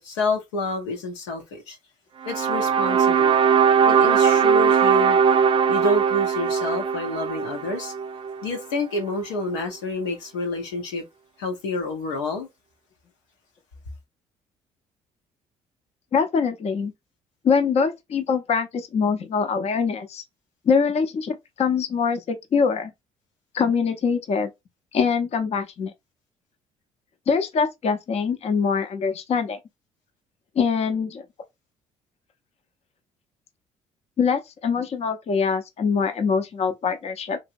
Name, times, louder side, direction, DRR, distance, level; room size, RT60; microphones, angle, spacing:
voice 1, 0.0-1.8 2.2-3.4 3.9-5.2 5.7-7.9 8.4-11.0 11.4-12.5, left 3 dB, 90° left, 0.8 m, -28 dB
sound 1, 2.2-8.5, right 7 dB, 35° right, 0.4 m, -20 dB
voice 2, 16.1-16.9 17.4-20.2 20.7-22.9 23.5-24.5 24.9-25.9 27.3-29.6 30.6-31.2 34.2-37.4, left 5 dB, 45° left, 0.6 m, -23 dB
2.9 x 2.7 x 2.5 m
hypercardioid pair, 60°, 14 cm